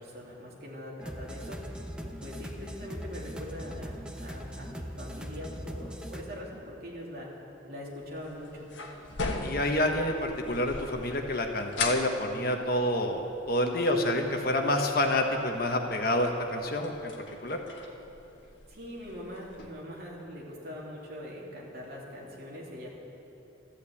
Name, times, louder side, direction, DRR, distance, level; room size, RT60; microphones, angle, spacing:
voice 1, 0.0-1.6 2.0-7.3 7.7-8.7 18.7-22.9, equal, 50° right, -4 dB, 3.1 m, -42 dB
sound 1, 1.0-6.2, equal, 5° right, 0.9 m, -40 dB
sound 2, 8.0-19.7, left 3 dB, 75° left, 1.4 m, -41 dB
voice 2, 9.4-13.2 13.5-17.1 17.4-17.6, left 1 dB, 50° left, 3 dB, 1.3 m, -28 dB
13.5 x 11.5 x 8.5 m, 2.9 s
head